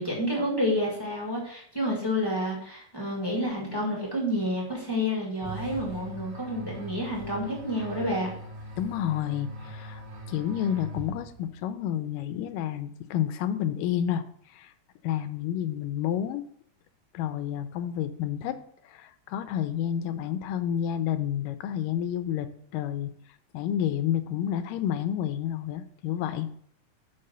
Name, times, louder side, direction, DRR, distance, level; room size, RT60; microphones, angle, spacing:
voice 1, 0.0-8.3, equal, 20° left, -4 dB, 0.6 m, -29 dB
sound 1, 5.4-11.5, equal, 90° right, 3.3 m, -41 dB
voice 2, 8.8-10.0 10.3-14.2 14.5-14.7 15.0-16.4 17.1-18.6 18.9-22.5 22.7-23.1 23.5-26.5, left 10 dB, 85° left, 11 dB, 2.2 m, -30 dB
6.6 x 5.5 x 5.5 m, 0.63 s
omnidirectional pair, 3.9 m